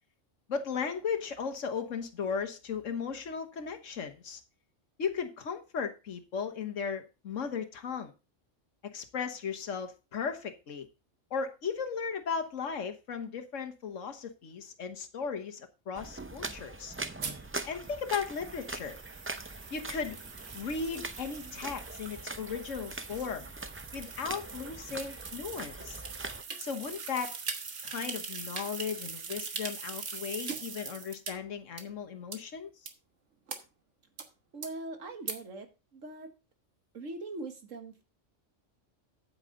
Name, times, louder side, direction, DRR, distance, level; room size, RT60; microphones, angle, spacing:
voice 1, 0.5-4.4 5.0-8.1 8.9-10.9 11.3-16.9 17.7-19.0 19.7-20.2 20.5-23.5 23.9-26.0 26.6-27.3 27.8-32.7, left 6 dB, 80° left, 1.5 m, -36 dB
sound 1, 15.9-26.4, right 2 dB, 20° right, 0.3 m, -42 dB
sound 2, 17.2-31.3 31.8-31.9 32.3-32.4 32.9-33.0 33.5-33.6 34.2-34.3 34.6-34.7 35.3-35.4, right 5 dB, 70° right, 1.6 m, -42 dB
voice 2, 34.5-36.3 36.9-38.0, right 2 dB, 85° right, 2.0 m, -41 dB
9.0 x 8.6 x 3.8 m
omnidirectional pair, 1.3 m